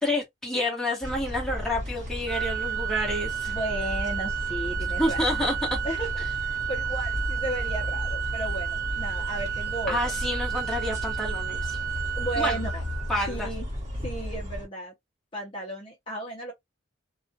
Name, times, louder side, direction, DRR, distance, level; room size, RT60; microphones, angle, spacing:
voice 1, 0.0-3.5 5.0-5.6 9.9-11.8 12.4-12.6 13.1-13.5, left 1 dB, 5° left, 1.0 m, -29 dB
sound 1, 1.0-14.6, left 1 dB, 35° right, 1.2 m, -34 dB
Organ, 2.3-13.3, right 9 dB, 70° right, 0.8 m, -32 dB
voice 2, 3.5-5.2 5.8-10.0 12.2-12.8 13.3-13.7 14.0-14.9 15.3-16.5, right 1 dB, 25° left, 0.6 m, -34 dB
2.3 x 2.3 x 2.6 m
head